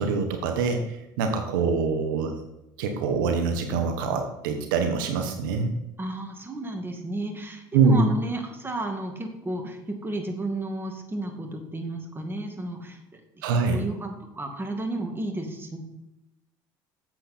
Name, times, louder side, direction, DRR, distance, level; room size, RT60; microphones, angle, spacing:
voice 1, 0.0-2.3 2.8-5.7 7.7-8.1 13.4-13.8, right 4 dB, 80° right, 5 dB, 1.2 m, -24 dB
voice 2, 6.0-13.2 13.5-15.8, right 2 dB, 20° right, 3 dB, 2.2 m, -33 dB
9.0 x 7.5 x 4.4 m, 0.88 s
hypercardioid pair, 70°, 11 cm